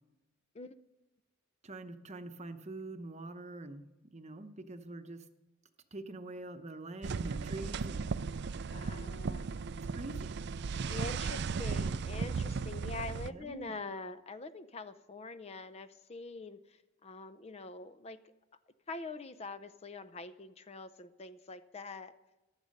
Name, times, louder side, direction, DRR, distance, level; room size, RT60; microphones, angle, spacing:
voice 1, 1.6-3.9 4.1-5.3 5.9-8.1 9.9-10.4 13.3-13.8, right 2 dB, 35° right, 8 dB, 0.9 m, -45 dB
sound 1, 7.0-13.3, right 5 dB, 60° right, 0.4 m, -36 dB
voice 2, 8.7-9.7 10.9-16.6 17.0-18.2 18.9-22.1, left 3 dB, 30° left, 12 dB, 0.6 m, -44 dB
15.0 x 11.5 x 5.3 m, 1.0 s
head